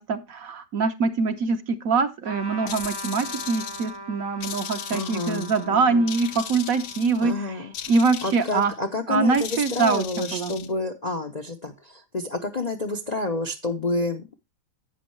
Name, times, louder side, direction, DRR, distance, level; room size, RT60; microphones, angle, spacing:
voice 1, 0.0-7.6 7.9-8.7 9.1-10.5, right 4 dB, 60° right, 1.3 m, -24 dB
Trumpet, 2.2-8.1, right 1 dB, 20° right, 0.6 m, -41 dB
sound 1, 2.7-4.0 4.4-5.6 6.1-7.3 7.7-8.7 9.3-10.7, left 9 dB, 70° left, 1.2 m, -37 dB
voice 2, 4.9-6.1 7.2-7.7 8.2-14.3, left 2 dB, 40° left, 0.6 m, -29 dB
11.0 x 8.6 x 3.2 m
omnidirectional pair, 1.8 m